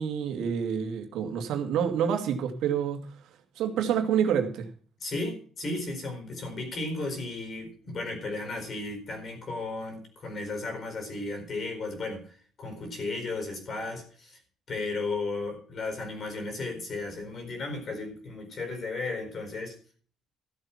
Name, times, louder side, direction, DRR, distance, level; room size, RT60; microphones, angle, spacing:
voice 1, 0.0-3.2 3.6-4.7, right 8 dB, 75° right, 4 dB, 2.4 m, -28 dB
voice 2, 5.0-14.4 14.7-19.8, left 3 dB, 35° left, 6 dB, 4.5 m, -34 dB
14.0 x 7.6 x 5.7 m, 0.44 s
cardioid pair, 170°, 0 cm